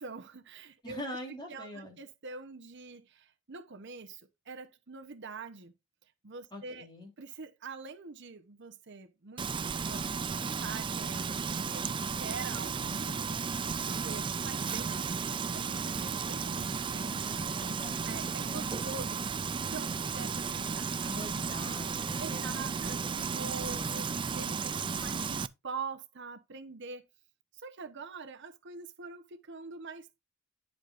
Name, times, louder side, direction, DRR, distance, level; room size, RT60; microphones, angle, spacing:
voice 1, 0.0-1.0 1.5-5.7 6.2-6.9 7.2-17.1 17.6-17.8 18.0-19.2 19.6-20.9 22.2-27.0 27.5-30.1, right 4 dB, 60° right, 0.9 m, -45 dB
voice 2, 0.8-2.0 6.5-7.1 17.1-18.7 21.0-22.8 23.2-24.0 24.4-25.0, left 1 dB, 20° left, 3.7 m, -45 dB
Frying (food), 9.4-25.5, right 5 dB, 25° right, 0.4 m, -34 dB
10.0 x 8.0 x 2.5 m
head